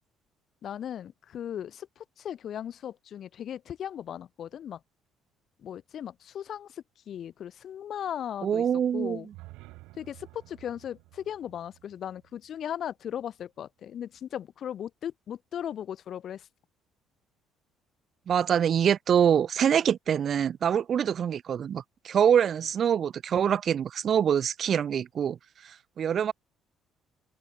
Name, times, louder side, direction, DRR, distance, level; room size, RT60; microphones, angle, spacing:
voice 1, 0.6-4.8 5.6-8.6 8.9-9.3 10.0-16.5, left 9 dB, 55° left, 0.5 m, -37 dB
voice 2, 8.4-9.2 18.3-25.4 25.6-26.3, right 8 dB, 50° right, 0.3 m, -25 dB
sound 1, 9.1-13.2, right 21 dB, 90° right, 3.7 m, -52 dB
open air
cardioid pair, 95°, 0 cm